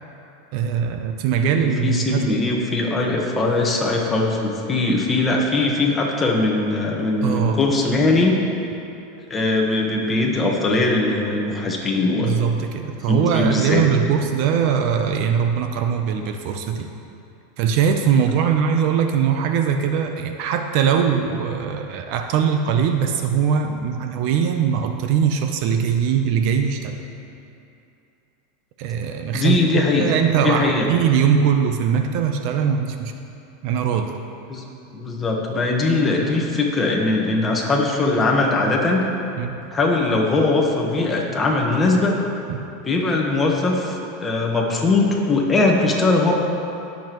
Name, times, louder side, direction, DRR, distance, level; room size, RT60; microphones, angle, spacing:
voice 1, 0.5-2.4 7.2-7.8 12.2-16.9 17.6-27.0 28.8-33.1 33.6-34.1 39.4-39.6 42.5-42.6, right 7 dB, 50° right, 5 dB, 0.7 m, -21 dB
voice 2, 1.4-8.3 9.3-12.3 13.1-13.8 29.3-30.1 30.4-30.9 34.5-34.6 34.9-39.0 39.7-42.1 42.8-46.3, left 2 dB, 15° left, -1 dB, 1.4 m, -20 dB
19.0 x 7.0 x 3.1 m, 2.7 s
supercardioid pair, 150°, 0 cm